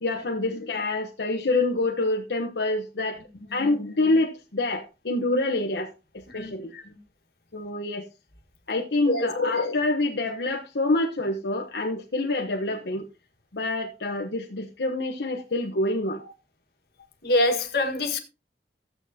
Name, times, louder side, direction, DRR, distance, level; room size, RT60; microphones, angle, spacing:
voice 1, 0.0-3.2 3.5-6.8 7.5-8.1 8.7-13.1 13.5-16.3, left 2 dB, 80° left, 1.0 m, -26 dB
voice 2, 3.3-3.7 6.3-6.6 6.8-7.0 9.1-9.3 17.2-18.2, left 1 dB, 60° left, 1.6 m, -25 dB
14.5 x 8.0 x 2.8 m
head